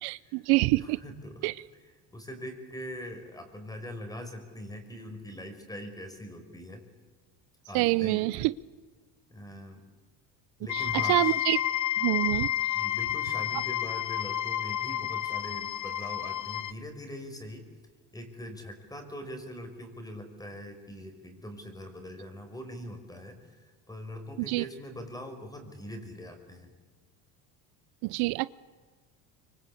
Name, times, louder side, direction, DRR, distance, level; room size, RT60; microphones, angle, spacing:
voice 1, 0.0-1.0 1.4-1.5 7.7-8.5 10.7-11.6 12.0-12.5 24.5-24.6 28.0-28.5, right 21 dB, 80° right, 18 dB, 0.8 m, -26 dB
voice 2, 0.8-1.5 2.1-6.8 7.7-8.3 9.3-9.8 10.6-11.4 12.7-17.7 18.1-26.7, equal, 10° left, 6 dB, 5.3 m, -42 dB
sound 1, 10.7-16.7, left 11 dB, 45° left, 1.0 m, -30 dB
25.0 x 24.5 x 8.4 m, 1.4 s
cardioid pair, 125°, 39 cm